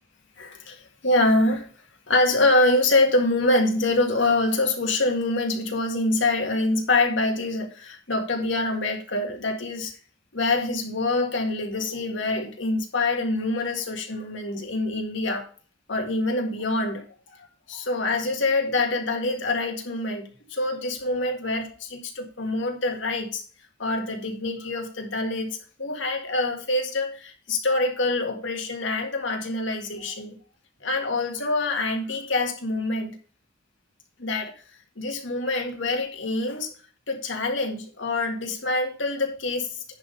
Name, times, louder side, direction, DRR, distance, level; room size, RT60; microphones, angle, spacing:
voice 1, 0.4-1.7 2.1-9.9 10.3-15.5 15.9-17.0 17.7-23.4 23.8-30.4 30.8-33.2 34.2-34.5 35.0-36.7 37.1-39.8, left 2 dB, 65° left, 3 dB, 1.8 m, -25 dB
10.5 x 4.2 x 5.2 m, 0.40 s
head